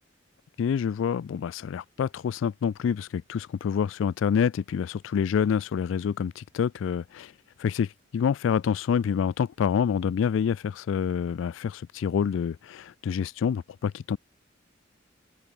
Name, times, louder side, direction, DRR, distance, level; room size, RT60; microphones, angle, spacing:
voice 1, 0.6-7.3 7.6-14.2, left 7 dB, 90° left, 0.3 m, -27 dB
open air
head